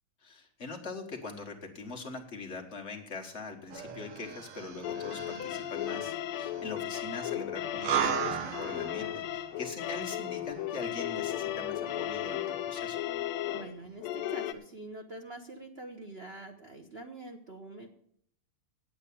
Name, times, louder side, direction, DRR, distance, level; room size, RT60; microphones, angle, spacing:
voice 1, 0.2-13.0, left 4 dB, 35° left, 2 dB, 1.5 m, -42 dB
sound 1, 3.7-13.2 13.5-13.6, right 8 dB, 85° right, 2.0 m, -38 dB
sound 2, 4.8-14.5, left 12 dB, 85° left, 1.6 m, -35 dB
voice 2, 13.5-17.9, right 2 dB, 60° right, 4 dB, 0.6 m, -45 dB
8.7 x 8.5 x 8.4 m, 0.65 s
omnidirectional pair, 2.4 m